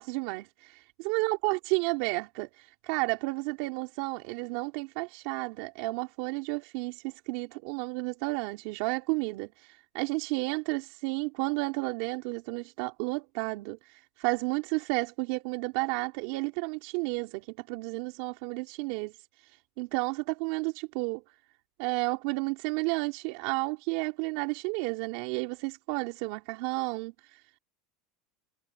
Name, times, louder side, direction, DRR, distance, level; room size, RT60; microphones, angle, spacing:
voice 1, 0.0-19.1 19.8-21.2 21.8-27.1, right 25 dB, 60° right, 3.9 m, -32 dB
supercardioid pair, 165°, 0 cm